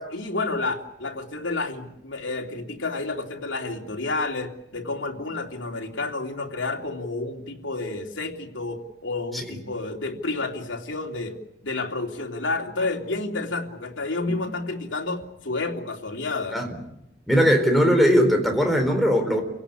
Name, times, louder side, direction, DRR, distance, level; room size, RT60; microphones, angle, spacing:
voice 1, 0.0-11.3 11.6-16.7, left 3 dB, 90° left, 1 dB, 3.1 m, -30 dB
voice 2, 17.3-19.4, equal, ahead, 2 dB, 4.2 m, -20 dB
29.0 x 17.5 x 10.0 m, 0.85 s
head